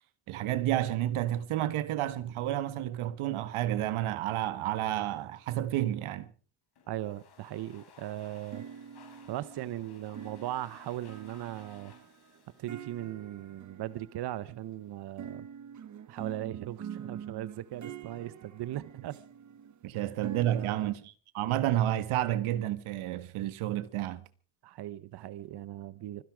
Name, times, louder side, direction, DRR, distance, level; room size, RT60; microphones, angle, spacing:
voice 1, 0.3-6.3 19.8-21.0 21.3-24.3, right 13 dB, 90° right, 1.5 m, -30 dB
Domestic sounds home sounds, 6.8-13.6, left 6 dB, 50° left, 5.3 m, -59 dB
voice 2, 6.9-8.7 9.3-11.9 12.6-15.5 16.1-19.2 20.0-20.1 20.4-20.9 24.6-26.2, right 13 dB, 55° right, 0.8 m, -38 dB
String glide, 8.3-14.7 15.2-20.9, right 8 dB, 35° right, 1.1 m, -45 dB
25.0 x 11.0 x 5.0 m
cardioid pair, 155°, 48 cm